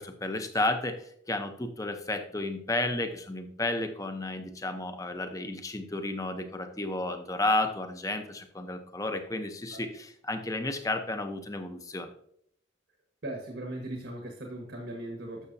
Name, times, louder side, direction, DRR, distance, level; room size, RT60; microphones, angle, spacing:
voice 1, 0.0-12.1, left 2 dB, 15° left, 7 dB, 0.8 m, -32 dB
voice 2, 13.2-15.5, right 1 dB, 70° right, 2 dB, 1.6 m, -38 dB
12.0 x 7.0 x 2.8 m, 0.68 s
head